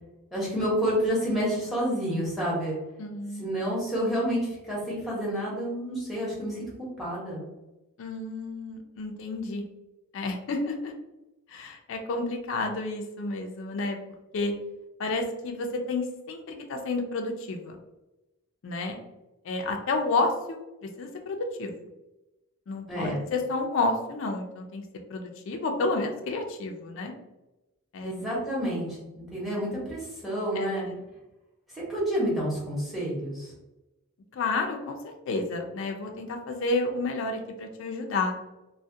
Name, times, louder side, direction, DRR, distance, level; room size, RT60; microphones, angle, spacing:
voice 1, 0.3-2.8 3.4-4.4 4.7-6.7 7.0-7.4 22.9-23.2 28.0-30.9 31.9-33.5, equal, ahead, -6 dB, 0.8 m, -29 dB
voice 2, 3.0-3.5 8.0-9.6 10.1-10.9 11.5-14.0 14.3-14.5 15.0-17.8 18.6-19.0 19.4-21.7 22.7-24.8 25.1-27.1 27.9-28.1 30.5-31.0 34.3-38.3, left 3 dB, 60° left, 4 dB, 0.3 m, -30 dB
2.3 x 2.1 x 2.6 m, 1.0 s
head